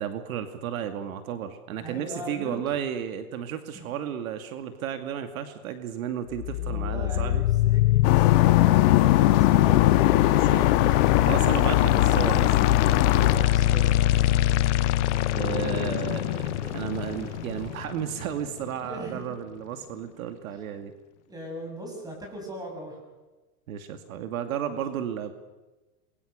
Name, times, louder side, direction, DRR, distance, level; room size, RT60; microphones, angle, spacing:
voice 1, 0.0-7.4 9.8-10.8 11.1-12.9 15.3-20.9 23.7-25.3, right 9 dB, 70° right, 8 dB, 2.5 m, -33 dB
voice 2, 1.8-2.7 3.7-3.9 6.6-10.2 13.2-14.5 18.8-19.2 21.3-23.0, right 1 dB, 10° right, 1 dB, 7.1 m, -39 dB
sound 1, 6.3-18.3, left 15 dB, 55° left, 1.0 m, -22 dB
sound 2, 8.0-13.5, left 14 dB, 35° left, 1.8 m, -24 dB
sound 3, 10.3-17.7, right 9 dB, 45° right, 2.3 m, -44 dB
28.5 x 23.0 x 6.8 m, 1.1 s
supercardioid pair, 165°, 43 cm